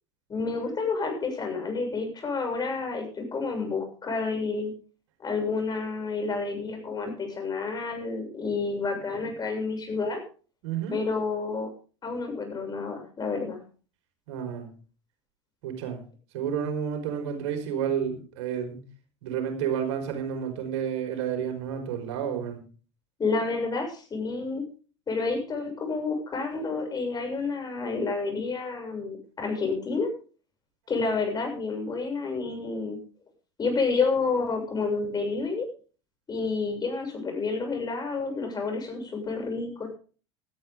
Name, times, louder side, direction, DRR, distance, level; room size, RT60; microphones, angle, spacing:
voice 1, 0.3-4.7 5.2-10.2 10.9-11.7 12.0-13.6 23.2-24.6 25.1-30.1 30.9-33.0 33.6-35.7 36.3-40.0, left 4 dB, 25° left, 4 dB, 7.1 m, -29 dB
voice 2, 10.6-10.9 14.3-14.7 15.6-16.0 16.3-18.8 19.2-22.6, right 8 dB, 65° right, 5 dB, 5.1 m, -30 dB
17.0 x 13.5 x 3.8 m, 0.38 s
hypercardioid pair, 85°, 15 cm